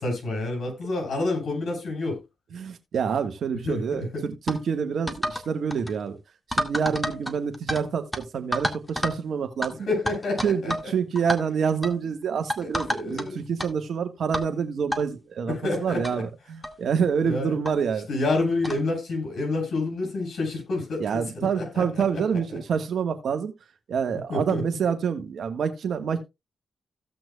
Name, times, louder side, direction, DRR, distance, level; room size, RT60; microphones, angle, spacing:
voice 1, 0.0-2.2 3.6-4.2 9.9-10.9 12.6-13.4 15.5-16.0 17.2-17.6 18.1-22.2 22.5-22.6 24.3-24.6, left 2 dB, 75° left, 7.2 m, -28 dB
voice 2, 2.5-6.2 6.5-9.9 10.4-18.1 21.0-23.5 23.9-26.2, right 6 dB, 75° right, 1.5 m, -27 dB
sound 1, 4.5-4.6 5.1-5.4 5.7-5.9 6.5-7.8 8.1-8.2 8.5-9.2 9.6-9.7 10.1-10.9 11.1-11.4 11.8-12.0 12.5-13.2 13.6-13.7 14.3-14.5 14.9-15.0 15.7-15.8 16.0-16.1 16.6-16.8 17.6-17.7 18.6-18.8, equal, 10° left, 2.0 m, -29 dB
16.5 x 6.1 x 2.3 m
supercardioid pair, 50°, 0 cm